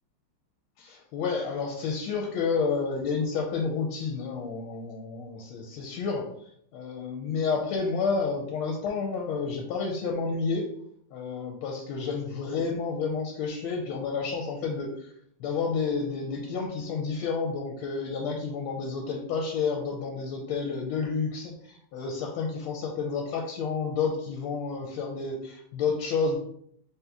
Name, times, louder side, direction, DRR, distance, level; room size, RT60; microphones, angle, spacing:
voice 1, 0.8-6.3 6.7-10.7 11.1-15.1 15.4-26.4, left 5 dB, 80° left, 1 dB, 1.4 m, -30 dB
3.7 x 2.8 x 3.5 m, 0.68 s
omnidirectional pair, 2.4 m